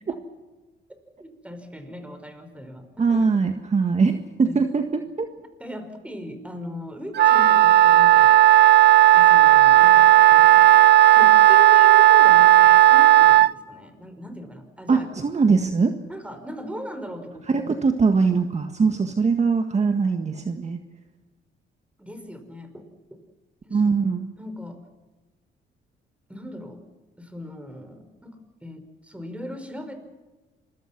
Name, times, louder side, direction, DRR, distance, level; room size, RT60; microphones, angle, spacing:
voice 1, 1.2-3.2 4.4-4.6 5.6-8.4 9.1-10.7 11.1-15.1 16.1-17.7 22.0-23.2 23.6-23.9 24.4-24.8 26.3-26.8 27.2-30.0, equal, 5° right, 7 dB, 5.4 m, -38 dB
voice 2, 3.0-5.3 14.9-15.9 17.5-20.8 23.7-24.3, right 4 dB, 35° right, 6 dB, 1.8 m, -22 dB
Wind instrument woodwind instrument, 7.2-13.5, right 14 dB, 60° right, 0.7 m, -13 dB
27.0 x 23.0 x 6.1 m, 1.2 s
cardioid pair, 90°, 20 cm